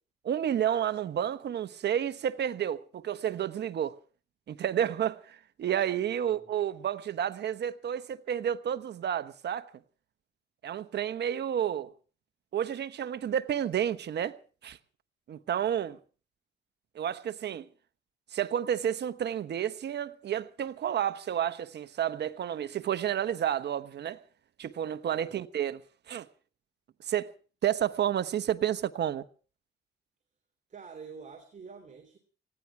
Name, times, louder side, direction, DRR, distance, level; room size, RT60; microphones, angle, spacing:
voice 1, 0.2-4.0 4.5-9.6 10.6-11.9 12.5-14.3 14.6-14.8 15.3-16.0 16.9-17.7 18.3-24.2 24.6-25.8 26.1-26.3 27.0-27.3 27.6-29.2, right 10 dB, 60° right, 1.1 m, -30 dB
voice 2, 6.2-6.6 25.1-25.5 30.7-32.2, right 5 dB, 40° right, 3.1 m, -47 dB
19.5 x 16.0 x 4.7 m
cardioid pair, 90°, 20 cm